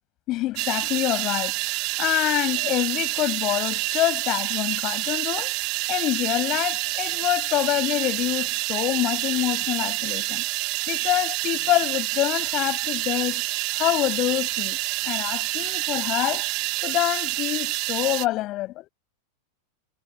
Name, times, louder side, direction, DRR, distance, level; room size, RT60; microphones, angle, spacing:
voice 1, 0.3-5.5 5.9-10.4 10.9-13.4 13.7-14.8 15.1-16.5 16.8-18.9, left 17 dB, 35° left, 6.5 m, -26 dB
sound 1, 0.6-18.3, right 26 dB, 40° right, 5.8 m, -28 dB
figure-of-eight pair, 90°, 0 cm